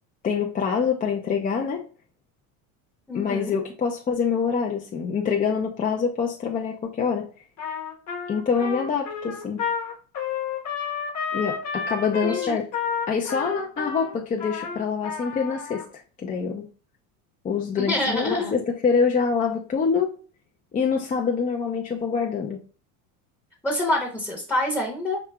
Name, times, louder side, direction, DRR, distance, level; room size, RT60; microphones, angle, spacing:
voice 1, 0.2-1.8 3.1-7.2 8.3-9.6 11.3-12.6 13.1-15.8 16.2-16.6 17.4-20.1 20.7-22.6, left 6 dB, 20° left, 1 dB, 0.4 m, -25 dB
voice 2, 3.1-3.6 12.2-12.6 17.8-18.6 23.6-25.2, left 1 dB, 5° left, -1 dB, 0.8 m, -26 dB
Trumpet, 7.6-15.8, left 6 dB, 40° left, 1.2 m, -31 dB
4.8 x 2.8 x 2.3 m, 0.38 s
supercardioid pair, 105°, 43 cm